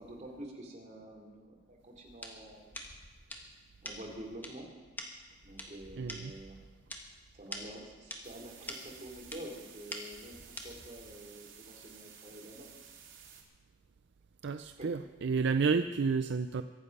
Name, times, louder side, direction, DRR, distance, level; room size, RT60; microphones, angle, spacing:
voice 1, 0.0-2.8 3.8-4.7 5.4-6.6 7.3-12.7 14.8-14.9, right 1 dB, 35° right, 0 dB, 3.1 m, -48 dB
sound 1, 2.1-11.2, left 1 dB, 10° left, 1.5 m, -47 dB
voice 2, 6.0-6.3 14.4-16.6, right 5 dB, 65° right, 10 dB, 0.4 m, -30 dB
sound 2, 8.2-13.4, right 8 dB, 85° right, 2.4 m, -54 dB
23.5 x 8.6 x 5.4 m, 1.3 s
head